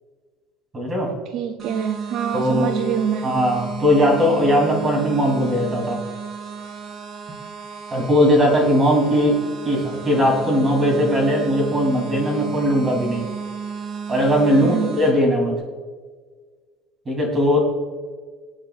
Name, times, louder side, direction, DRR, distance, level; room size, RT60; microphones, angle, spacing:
voice 1, 0.7-1.1 2.3-2.7 3.2-6.0 7.9-9.4 9.6-13.3 14.1-15.6 17.1-17.6, equal, 20° right, 0 dB, 3.3 m, -19 dB
voice 2, 1.3-3.3 14.6-14.9, right 8 dB, 50° right, 8 dB, 0.5 m, -25 dB
sound 1, 1.6-15.1, right 6 dB, 35° right, 3.9 m, -33 dB
24.5 x 8.8 x 2.5 m, 1.5 s
cardioid pair, 160°, 0 cm